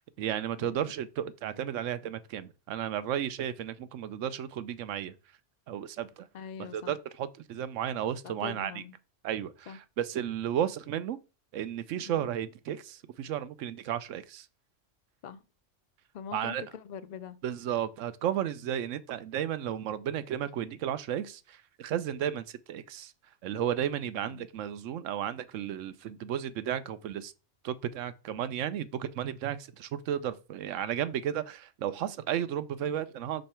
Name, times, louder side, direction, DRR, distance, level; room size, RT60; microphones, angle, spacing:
voice 1, 0.0-5.1 5.7-6.3 6.7-8.8 9.2-11.2 11.5-14.5 16.3-16.6 17.4-23.1 23.4-27.3 27.6-33.4, right 10 dB, 90° right, 1.0 m, -33 dB
voice 2, 0.6-0.9 6.3-7.0 8.2-9.0 9.7-9.8 12.0-12.3 15.2-15.4 16.1-17.4 24.2-24.5, left 7 dB, 55° left, 0.4 m, -43 dB
5.6 x 5.3 x 4.3 m
omnidirectional pair, 1.3 m